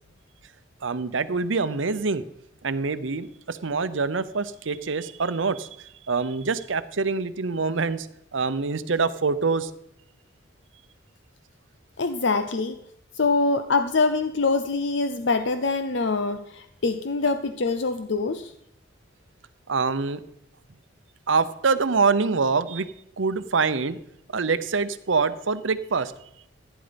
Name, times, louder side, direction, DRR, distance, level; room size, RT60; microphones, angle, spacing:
voice 1, 0.8-2.2 2.6-8.1 8.3-9.7 19.7-20.2 21.3-22.9 23.2-24.0 24.3-26.1, right 4 dB, 75° right, 13 dB, 0.8 m, -25 dB
voice 2, 12.0-12.8 13.1-18.5, left 3 dB, 65° left, 9 dB, 0.7 m, -24 dB
15.5 x 10.0 x 5.2 m, 0.74 s
head